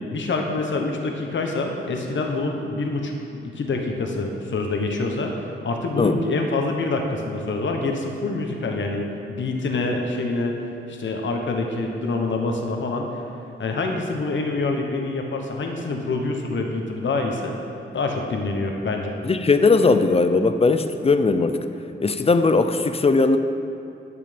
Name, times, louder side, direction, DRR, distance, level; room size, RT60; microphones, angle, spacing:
voice 1, 0.1-5.3 5.6-10.5 10.9-13.1 13.6-17.6 17.9-19.1, left 3 dB, 65° left, 2 dB, 1.2 m, -26 dB
voice 2, 19.2-21.6 22.0-23.4, left 3 dB, 30° left, 9 dB, 0.5 m, -18 dB
11.0 x 8.2 x 5.2 m, 2.6 s
wide cardioid pair, 125°, 21 cm